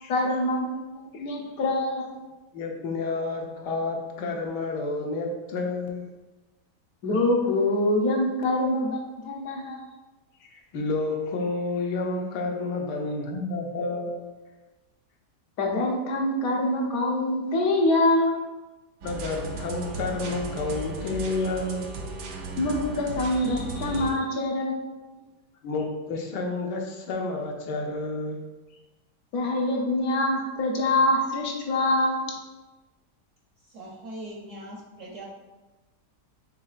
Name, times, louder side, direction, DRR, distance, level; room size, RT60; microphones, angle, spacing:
voice 1, 0.1-2.2 7.0-9.8 15.6-18.3 22.6-24.9 29.3-32.3, left 1 dB, 65° left, 0 dB, 1.2 m, -25 dB
voice 2, 2.5-6.0 10.4-14.2 19.0-21.9 25.6-28.4, left 3 dB, 85° left, 1 dB, 1.4 m, -30 dB
sound 1, 19.0-24.1, right 2 dB, 85° right, 1.3 m, -35 dB
voice 3, 33.6-35.2, right 1 dB, 65° right, -1 dB, 0.8 m, -41 dB
5.5 x 3.7 x 2.4 m, 1.1 s
omnidirectional pair, 1.8 m